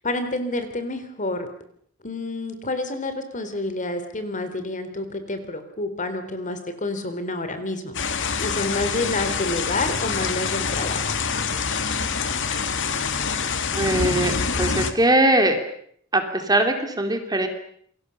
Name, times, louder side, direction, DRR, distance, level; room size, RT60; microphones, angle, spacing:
voice 1, 0.0-1.5 2.0-11.1, left 2 dB, 35° left, 9 dB, 3.3 m, -29 dB
sound 1, 7.9-14.9, left 5 dB, 60° left, 2.2 m, -26 dB
voice 2, 13.7-15.6 16.1-17.5, right 1 dB, 20° right, 6 dB, 3.3 m, -21 dB
28.5 x 23.5 x 6.9 m, 0.63 s
head